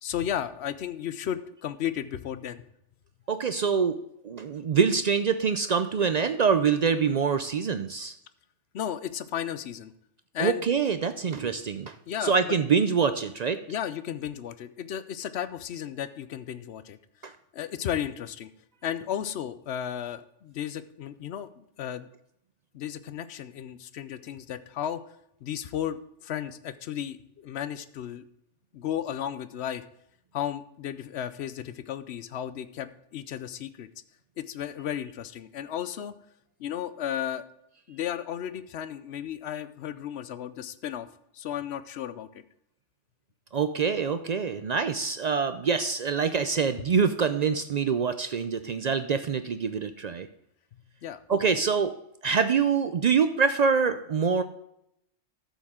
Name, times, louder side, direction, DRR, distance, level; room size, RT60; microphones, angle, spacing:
voice 1, 0.0-2.6 8.7-9.9 10.3-10.6 11.3-11.4 12.1-12.6 13.7-17.0 17.5-18.5 18.8-22.1 22.7-25.0 25.4-28.2 28.7-29.8 30.3-33.9 34.4-36.1 36.6-37.4 37.9-41.1 41.3-42.3 51.0-51.6, left 10 dB, 65° left, 13 dB, 0.9 m, -34 dB
voice 2, 3.3-4.0 4.2-8.1 10.4-11.9 12.2-13.6 17.2-17.3 43.5-50.3 51.3-51.9 52.2-54.4, right 6 dB, 65° right, 10 dB, 0.4 m, -25 dB
13.0 x 7.2 x 3.6 m, 0.78 s
omnidirectional pair, 1.3 m